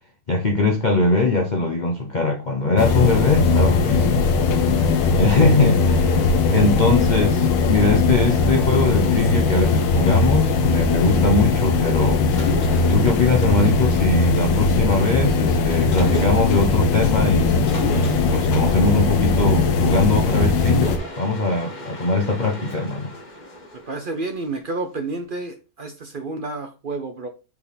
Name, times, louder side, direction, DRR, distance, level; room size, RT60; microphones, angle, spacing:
voice 1, 0.3-4.3 5.1-6.2 6.5-12.2 12.9-23.1, left 3 dB, 45° left, 0.6 m, -21 dB
sound 1, 2.8-21.0, left 3 dB, 80° left, 1.5 m, -19 dB
voice 2, 4.9-5.5 6.1-6.8 9.1-9.7 23.9-27.3, right 3 dB, 60° right, 0.5 m, -31 dB
Mechanisms, 12.3-14.7 15.9-16.8 17.7-20.0 20.6-24.7, left 2 dB, 30° left, 1.2 m, -35 dB
5.7 x 4.6 x 4.0 m
omnidirectional pair, 2.0 m